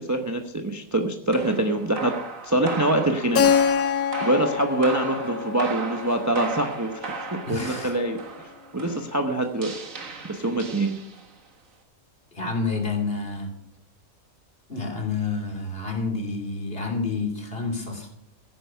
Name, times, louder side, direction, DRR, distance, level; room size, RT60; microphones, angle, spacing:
voice 1, 0.0-2.1 2.4-3.5 4.2-8.2 8.7-9.7 10.3-11.0, right 1 dB, 15° right, 5 dB, 0.9 m, -24 dB
sound 1, 1.3-11.5, right 4 dB, 65° right, 2.0 m, -37 dB
Keyboard (musical), 3.3-7.9, left 7 dB, 90° left, 1.3 m, -26 dB
voice 2, 7.5-7.9 12.3-13.5 14.7-18.1, left 4 dB, 40° left, 2 dB, 3.0 m, -29 dB
16.0 x 9.3 x 5.7 m, 0.75 s
omnidirectional pair, 1.5 m